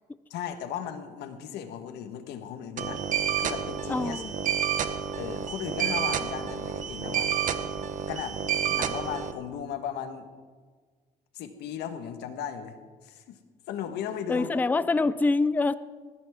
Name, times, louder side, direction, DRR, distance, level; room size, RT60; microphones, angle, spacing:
voice 1, 0.3-3.0 3.4-4.3 5.2-7.4 8.1-8.4 8.7-10.3 11.3-12.7 13.0-13.4 13.7-14.5, left 8 dB, 80° left, 8 dB, 1.5 m, -36 dB
sound 1, 2.8-9.3, right 8 dB, 50° right, 1.0 m, -29 dB
voice 2, 3.9-4.3 14.3-15.7, left 3 dB, 10° left, 15 dB, 0.4 m, -25 dB
19.5 x 14.5 x 3.7 m, 1.5 s
cardioid pair, 110°, 17 cm